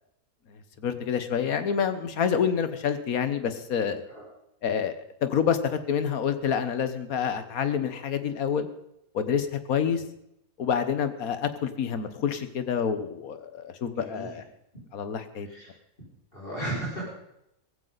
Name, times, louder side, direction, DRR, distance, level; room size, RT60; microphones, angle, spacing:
voice 1, 0.8-4.0 4.6-8.7 9.1-10.0 10.6-14.4 14.9-15.5, left 7 dB, 70° left, 10 dB, 1.6 m, -27 dB
voice 2, 13.9-14.4 15.4-15.7 16.3-17.1, right 1 dB, 35° left, -7 dB, 6.0 m, -35 dB
16.5 x 15.5 x 4.1 m, 0.80 s
omnidirectional pair, 1.6 m